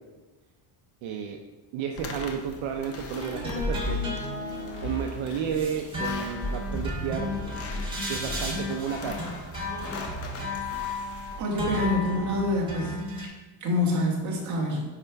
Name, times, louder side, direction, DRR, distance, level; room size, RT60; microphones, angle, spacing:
voice 1, 1.0-1.4 1.7-4.0 4.8-7.3 8.1-9.2, right 7 dB, 65° right, 3 dB, 0.7 m, -32 dB
sound 1, 2.0-11.4, left 3 dB, 30° left, 0.6 m, -41 dB
sound 2, 3.1-13.3, left 2 dB, 10° right, 1.5 m, -33 dB
sound 3, 3.6-5.7 6.4-8.0 8.2-8.6, left 1 dB, 45° left, 1.9 m, -34 dB
voice 2, 11.4-13.1 13.6-14.8, left 1 dB, 35° right, -2 dB, 1.6 m, -27 dB
9.5 x 3.3 x 4.6 m, 1.2 s
cardioid pair, 175°, 50 cm